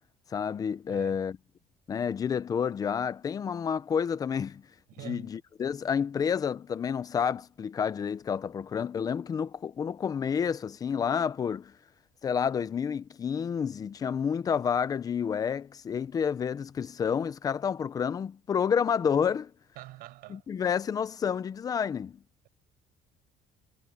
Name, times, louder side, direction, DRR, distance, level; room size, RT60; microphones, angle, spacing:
voice 1, 0.3-1.4 1.9-4.6 5.0-11.7 12.2-19.5 20.3-22.2, left 7 dB, 25° left, 0.6 m, -29 dB
voice 2, 0.9-1.2 4.9-5.3 19.7-20.4, right 18 dB, 80° right, 6.7 m, -45 dB
cardioid pair, 175°, 15 cm